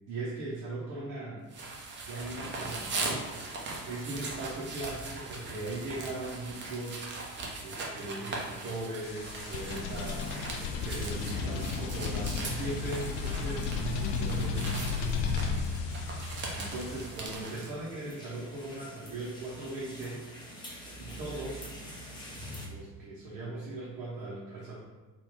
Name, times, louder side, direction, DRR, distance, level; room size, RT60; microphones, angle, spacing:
voice 1, 0.1-1.4 2.0-14.9 16.1-20.2 20.6-21.7 22.5-24.7, right 2 dB, 45° right, -7 dB, 1.0 m, -39 dB
sound 1, 1.5-17.7, right 3 dB, 25° right, 0.7 m, -40 dB
sound 2, 9.0-17.3, left 5 dB, 45° left, 0.5 m, -33 dB
sound 3, 15.5-22.7, equal, 10° left, 0.8 m, -47 dB
3.7 x 2.4 x 3.5 m, 1.2 s
figure-of-eight pair, 65°, 48 cm